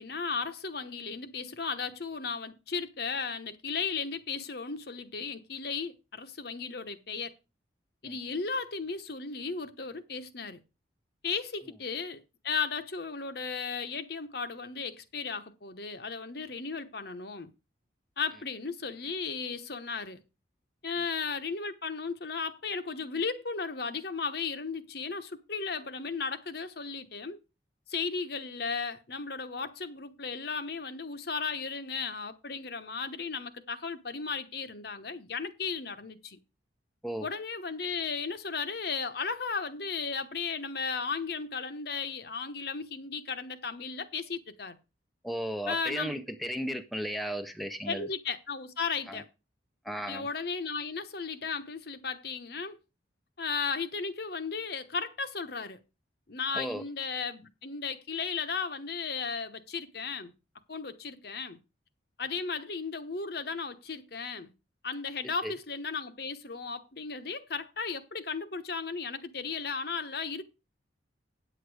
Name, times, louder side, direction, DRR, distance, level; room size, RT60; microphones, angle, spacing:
voice 1, 0.0-7.3 8.0-10.6 11.2-17.5 18.2-20.2 20.8-27.4 27.9-36.4 37.2-44.8 45.7-46.2 47.9-49.3 50.1-52.8 53.4-55.8 56.3-60.3 60.7-61.6 62.2-64.5 64.8-70.4, left 5 dB, 55° left, 1.0 m, -35 dB
voice 2, 45.2-48.1 49.1-49.2 49.8-50.3 56.5-56.8 65.4-65.5, equal, ahead, 0.6 m, -35 dB
9.1 x 8.1 x 4.8 m
head